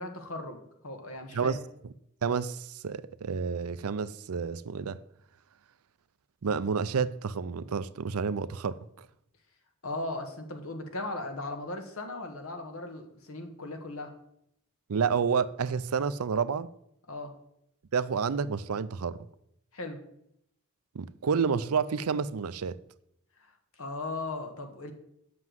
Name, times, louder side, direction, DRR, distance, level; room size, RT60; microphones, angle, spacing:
voice 1, 0.0-1.6 9.8-14.1 17.1-17.3 19.7-20.0 23.4-24.9, left 2 dB, 75° left, 1.5 m, -37 dB
voice 2, 2.2-5.0 6.4-9.1 14.9-16.7 17.9-19.2 20.9-22.8, right 6 dB, 85° right, 0.5 m, -29 dB
7.7 x 6.0 x 7.8 m
head